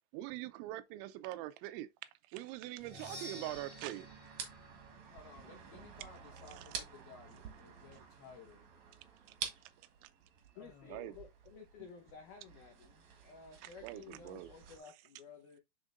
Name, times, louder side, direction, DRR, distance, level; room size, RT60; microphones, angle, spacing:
voice 1, 0.1-1.9 2.3-4.1 9.4-9.5 10.0-10.1 10.9-11.1 13.8-14.5, right 15 dB, 90° right, 3.0 m, -43 dB
Percussion, 2.8-6.6, equal, 20° right, 0.9 m, -52 dB
sound 1, 3.4-14.8, right 7 dB, 65° right, 1.8 m, -50 dB
voice 2, 5.1-8.7 10.6-11.2, left 4 dB, 65° left, 2.9 m, -57 dB
voice 3, 10.6-15.6, left 6 dB, 85° left, 1.8 m, -54 dB
10.5 x 3.6 x 2.5 m
omnidirectional pair, 5.3 m